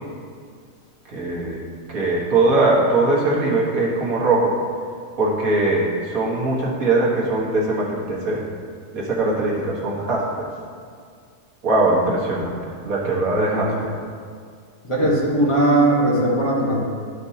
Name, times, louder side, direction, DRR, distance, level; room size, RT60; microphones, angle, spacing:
voice 1, 1.1-1.6 1.9-4.6 5.2-8.4 8.9-10.5 11.6-12.6 12.8-13.9, right 2 dB, 90° right, -4 dB, 1.8 m, -21 dB
voice 2, 13.3-13.8 14.8-16.8, right 1 dB, 25° left, -6 dB, 1.3 m, -19 dB
12.0 x 5.2 x 2.8 m, 2.1 s
omnidirectional pair, 1.4 m